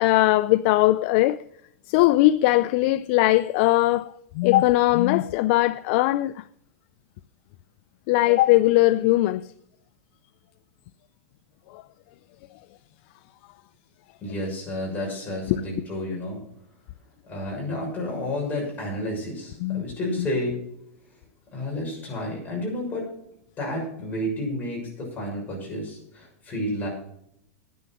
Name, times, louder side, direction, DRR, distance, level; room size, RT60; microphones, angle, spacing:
voice 1, 0.0-1.4 1.9-6.4 8.1-9.5 11.7-11.8 15.5-15.6 19.6-19.8 20.2-20.3, left 17 dB, 50° left, 0.4 m, -20 dB
voice 2, 14.2-16.4 17.3-20.6 21.5-23.0 23.6-26.9, left 1 dB, 20° left, 6.6 m, -31 dB
10.5 x 10.0 x 6.1 m
supercardioid pair, 145°, 8 cm